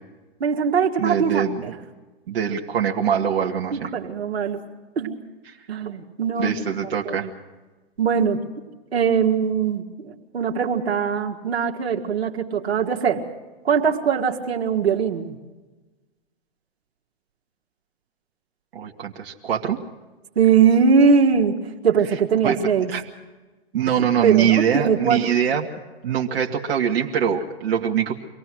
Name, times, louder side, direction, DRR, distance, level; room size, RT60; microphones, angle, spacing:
voice 1, 0.4-1.7 3.7-4.6 5.0-5.2 5.7-6.6 7.1-7.3 8.0-8.4 8.9-13.2 13.6-15.4 20.4-21.6 21.8-22.9 24.2-25.3, right 6 dB, 85° right, 1 dB, 2.3 m, -21 dB
voice 2, 1.0-1.6 2.3-3.9 5.5-5.6 6.3-7.3 18.7-19.8 22.4-22.6 22.9-23.0 23.7-25.7 26.0-28.2, right 8 dB, 65° right, 0 dB, 2.0 m, -23 dB
25.0 x 18.5 x 6.3 m, 1.2 s
hypercardioid pair, 130°, 31 cm